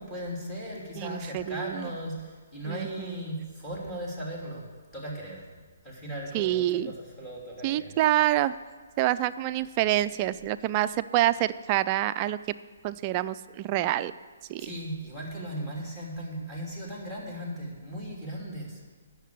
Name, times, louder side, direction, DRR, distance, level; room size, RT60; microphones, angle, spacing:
voice 1, 0.0-4.6 4.9-5.4 5.8-7.9 14.6-18.8, equal, 10° left, -4 dB, 3.1 m, -37 dB
voice 2, 1.0-1.9 2.7-3.2 6.3-6.9 7.6-8.5 9.0-12.4 12.8-14.1 14.5-14.7, right 14 dB, 30° right, 13 dB, 0.4 m, -27 dB
9.2 x 6.6 x 8.5 m, 1.5 s
hypercardioid pair, 140°, 0 cm